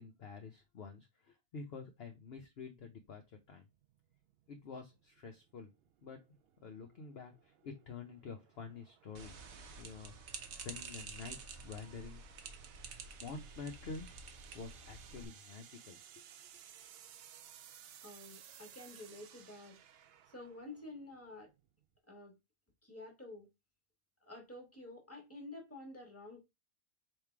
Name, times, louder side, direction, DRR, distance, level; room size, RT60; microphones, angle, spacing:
voice 1, 0.0-3.2 3.5-3.6 4.5-5.7 6.0-9.3 9.8-10.4 10.6-12.2 13.2-14.1 14.5-16.2, left 4 dB, 55° left, 0.8 m, -48 dB
sound 1, 3.0-22.0, right 9 dB, 75° right, 0.5 m, -60 dB
sound 2, 9.2-15.3, right 5 dB, 55° right, 1.0 m, -49 dB
voice 2, 18.0-19.8 20.3-21.5 22.1-22.3 22.8-23.5 24.2-26.4, left 2 dB, 10° left, 1.5 m, -50 dB
3.5 x 3.2 x 4.5 m
omnidirectional pair, 1.6 m